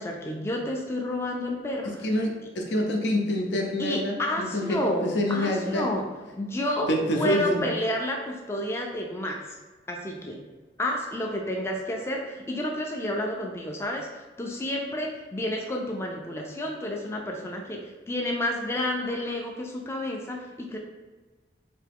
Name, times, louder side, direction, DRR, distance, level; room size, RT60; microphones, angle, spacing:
voice 1, 0.0-2.2 3.8-6.1 6.3-9.6 9.9-10.4 10.8-20.8, left 1 dB, 15° left, 0 dB, 0.3 m, -30 dB
voice 2, 2.0-5.9 6.9-7.6, left 1 dB, 85° left, 1 dB, 0.6 m, -26 dB
3.4 x 2.9 x 3.4 m, 1.3 s
head